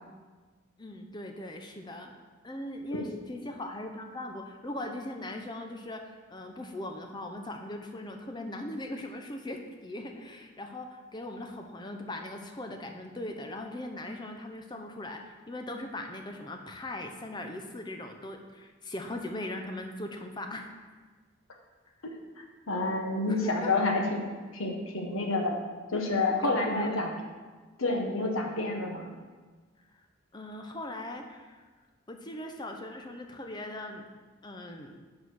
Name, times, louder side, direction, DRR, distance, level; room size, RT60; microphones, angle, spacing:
voice 1, 0.8-2.2 2.4-20.9 23.3-23.7 26.4-27.0 30.3-31.6 32.1-34.0 34.4-34.9, left 1 dB, 20° left, 4 dB, 0.6 m, -39 dB
voice 2, 22.0-25.6 25.9-27.1 27.8-29.1, left 2 dB, 85° left, 2 dB, 1.2 m, -29 dB
7.1 x 4.3 x 6.3 m, 1.4 s
head